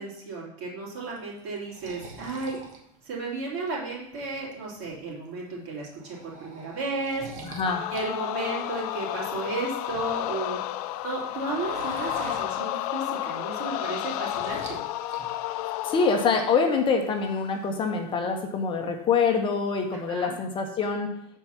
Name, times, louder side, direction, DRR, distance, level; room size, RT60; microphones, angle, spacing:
voice 1, 0.0-2.6 3.0-7.3 7.9-10.6 11.0-14.8 20.1-20.3, right 3 dB, 55° right, -4 dB, 3.1 m, -34 dB
sound 1, 1.0-3.7 4.1-4.9 5.2-5.5 5.8-8.1 8.3-10.4 10.7-13.1 13.4-14.8 15.1-15.7, right 2 dB, 40° right, 1.3 m, -42 dB
voice 2, 7.4-7.8 15.8-21.1, left 5 dB, 25° left, 3 dB, 0.8 m, -25 dB
sound 2, 7.6-16.5, left 14 dB, 75° left, 0.5 m, -31 dB
7.4 x 4.5 x 5.7 m, 0.77 s
supercardioid pair, 150°, 19 cm